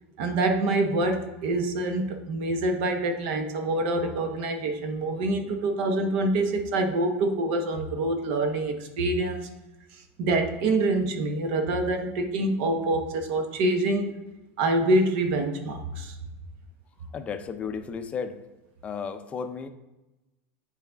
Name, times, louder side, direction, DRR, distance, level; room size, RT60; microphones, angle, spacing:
voice 1, 0.2-9.5 9.9-14.1 14.6-16.2, right 2 dB, 60° right, 5 dB, 1.0 m, -26 dB
voice 2, 17.1-18.4 18.8-19.7, left 6 dB, 20° left, 8 dB, 0.5 m, -33 dB
9.4 x 4.1 x 3.5 m, 1.0 s
supercardioid pair, 165°, 7 cm